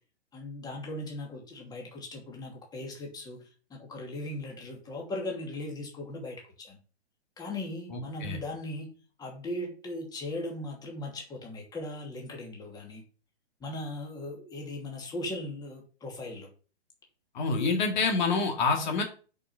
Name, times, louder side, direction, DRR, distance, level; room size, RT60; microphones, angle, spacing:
voice 1, 0.3-3.4 3.7-6.8 7.4-8.9 9.2-13.0 13.6-16.5 17.5-17.8, left 1 dB, 10° left, 0 dB, 2.6 m, -38 dB
voice 2, 17.3-19.0, left 4 dB, 45° left, 3 dB, 2.1 m, -26 dB
8.5 x 5.5 x 5.6 m, 0.37 s
figure-of-eight pair, 130°, 33 cm